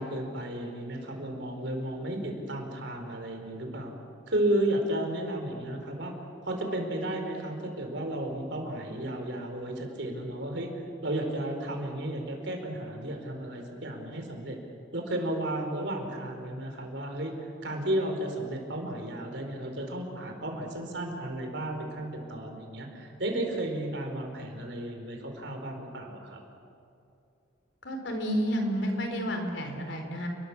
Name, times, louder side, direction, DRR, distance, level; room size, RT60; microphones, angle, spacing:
voice 1, 0.0-3.9 4.3-6.1 6.4-10.7 11.0-14.6 14.9-26.4, right 1 dB, 65° right, 3 dB, 4.7 m, -33 dB
voice 2, 27.8-30.3, equal, 65° left, 4 dB, 4.3 m, -30 dB
29.5 x 21.5 x 7.4 m, 2.6 s
head